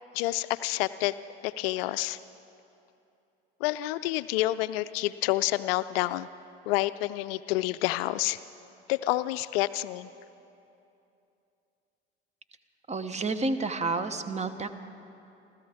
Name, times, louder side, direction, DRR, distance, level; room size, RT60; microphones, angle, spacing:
voice 1, 0.1-1.1 1.4-2.2 3.6-6.3 6.7-8.4 8.9-10.1, left 17 dB, 65° left, 15 dB, 0.5 m, -28 dB
voice 2, 12.9-14.7, right 3 dB, 20° right, 11 dB, 0.9 m, -30 dB
30.0 x 13.5 x 3.5 m, 2.8 s
hypercardioid pair, 65°, 32 cm